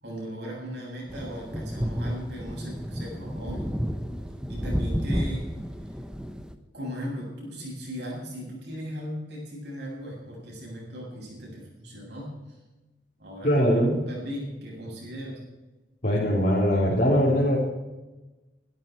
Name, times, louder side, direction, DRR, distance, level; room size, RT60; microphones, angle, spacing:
voice 1, 0.0-3.7 4.5-5.5 6.7-12.3 13.2-15.4, equal, 65° right, -3 dB, 7.7 m, -37 dB
sound 1, 1.1-6.6, equal, 5° right, 1.0 m, -31 dB
voice 2, 13.4-14.0 16.0-17.6, equal, 50° left, -7 dB, 3.8 m, -21 dB
22.5 x 12.5 x 4.7 m, 1.1 s
head